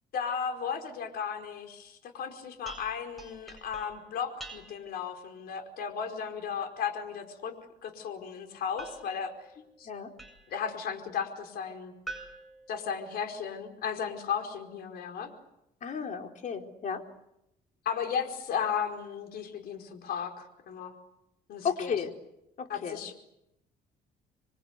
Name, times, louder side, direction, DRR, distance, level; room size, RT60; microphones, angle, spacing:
voice 1, 0.1-7.6 7.8-9.3 9.8-9.9 10.5-11.9 12.7-15.3 17.8-20.9 21.5-21.9 22.7-23.1, left 7 dB, 65° left, 5 dB, 4.9 m, -35 dB
sound 1, 2.6-5.0 8.8-10.7 12.1-13.5, right 2 dB, ahead, 7.8 m, -47 dB
voice 2, 15.8-17.0 21.6-22.1 22.6-23.0, left 6 dB, 50° left, 4 dB, 3.9 m, -33 dB
28.0 x 23.5 x 8.2 m, 0.84 s
cardioid pair, 110°, 17 cm